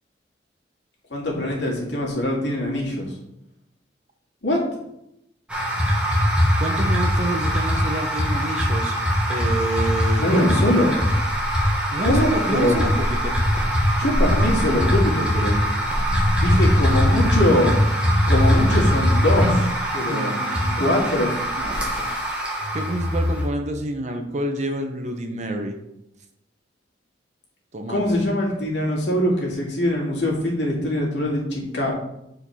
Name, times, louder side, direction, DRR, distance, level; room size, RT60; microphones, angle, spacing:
voice 1, 1.1-3.1 4.4-4.8 10.2-10.9 12.0-12.8 14.0-15.5 16.4-17.7 18.3-20.4 20.8-21.4 27.9-31.9, left 1 dB, 80° left, -3 dB, 2.2 m, -22 dB
sound 1, 5.5-23.5, equal, 5° right, 1.5 m, -21 dB
voice 2, 6.6-8.9 9.3-10.6 11.9-13.4 20.1-21.1 21.5-22.1 22.7-25.8 27.7-28.2, right 1 dB, 40° right, 5 dB, 0.9 m, -28 dB
7.7 x 4.7 x 4.3 m, 0.82 s
head